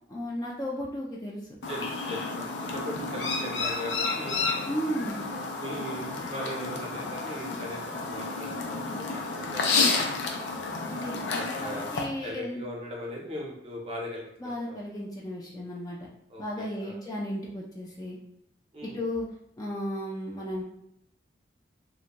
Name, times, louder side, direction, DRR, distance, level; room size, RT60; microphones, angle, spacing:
voice 1, 0.1-1.5 4.7-5.2 10.9-11.2 11.6-12.6 14.4-16.0 16.4-18.2 18.8-20.6, equal, 20° left, -3 dB, 0.4 m, -34 dB
Chirp tweet, 1.6-12.0, left 4 dB, 85° left, 0.4 m, -31 dB
voice 2, 1.7-4.4 5.2-10.0 11.3-11.9 12.2-14.8 16.3-17.0 18.7-19.0, equal, 30° right, -2 dB, 0.6 m, -39 dB
2.5 x 2.1 x 2.8 m, 0.77 s
head